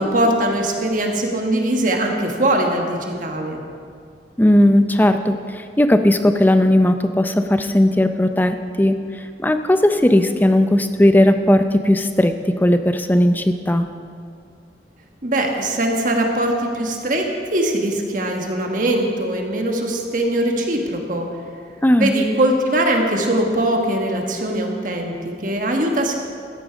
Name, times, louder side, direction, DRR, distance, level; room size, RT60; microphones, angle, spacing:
voice 1, 0.0-3.6 15.2-21.3 22.0-26.2, right 1 dB, 45° right, 2 dB, 1.4 m, -21 dB
voice 2, 4.4-13.8 21.8-22.1, left 1 dB, 10° left, 8 dB, 0.5 m, -16 dB
14.0 x 10.0 x 5.0 m, 2.2 s
head